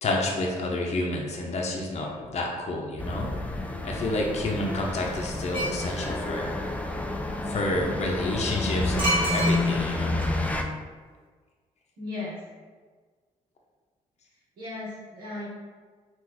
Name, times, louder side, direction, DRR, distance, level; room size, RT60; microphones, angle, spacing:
voice 1, 0.0-3.3 3.8-6.5 7.5-10.2, left 2 dB, 50° left, -1 dB, 0.7 m, -29 dB
sound 1, 3.0-10.6, left 2 dB, 10° left, 0.4 m, -29 dB
sound 2, 5.5-5.8 9.0-9.9 10.2-10.3, right 1 dB, 35° right, 1.0 m, -27 dB
voice 2, 12.0-12.4 14.6-15.5, left 2 dB, 75° right, -8 dB, 1.2 m, -36 dB
3.7 x 2.6 x 3.0 m, 1.5 s
cardioid pair, 70°, 15 cm